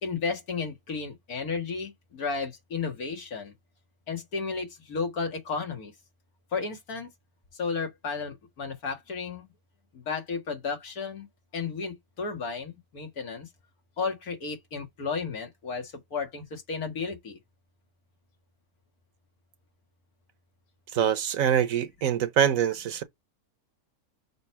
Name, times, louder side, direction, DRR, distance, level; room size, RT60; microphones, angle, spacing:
voice 1, 0.0-3.5 4.1-5.9 6.5-7.1 7.5-9.5 9.9-11.3 11.5-13.5 14.0-17.4, left 5 dB, 85° left, 2.3 m, -33 dB
voice 2, 20.9-23.0, right 9 dB, 70° right, 1.2 m, -24 dB
6.7 x 3.2 x 4.5 m
omnidirectional pair, 1.5 m